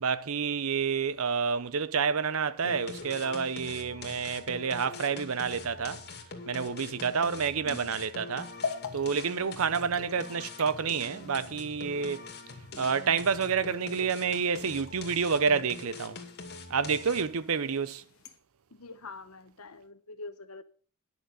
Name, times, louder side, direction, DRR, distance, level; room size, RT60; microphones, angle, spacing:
voice 1, 0.0-6.0 6.5-8.5 8.9-12.2 12.8-16.2 16.7-18.0, right 6 dB, 70° right, 0.7 m, -29 dB
sound 1, 2.6-17.4, left 3 dB, 50° left, 2.2 m, -44 dB
sound 2, 8.5-18.4, left 5 dB, 70° left, 1.6 m, -45 dB
voice 2, 18.8-20.6, left 3 dB, 90° left, 1.1 m, -45 dB
10.5 x 6.4 x 7.6 m
head